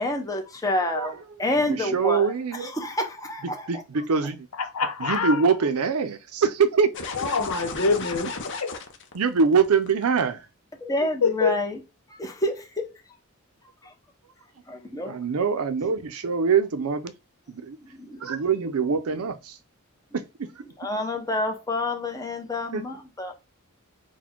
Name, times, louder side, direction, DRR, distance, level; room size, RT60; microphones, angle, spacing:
voice 1, 0.0-4.1 10.8-11.8 12.1-12.9 13.8-13.9 14.7-15.2 17.8-18.4 20.1-20.2 20.6-23.3, left 1 dB, 15° left, 0.8 m, -29 dB
voice 2, 1.9-2.7 3.7-4.5 5.0-6.9 9.1-10.4 15.1-17.1 17.5-17.8 18.2-19.6 20.1-20.2 22.7-22.8, right 5 dB, 80° right, 0.5 m, -23 dB
voice 3, 4.6-5.4 7.2-8.3 8.6-8.7 11.2-11.6, left 4 dB, 85° left, 0.8 m, -24 dB
sound 1, 6.9-10.0, left 4 dB, 55° left, 0.7 m, -34 dB
4.1 x 2.2 x 4.4 m
head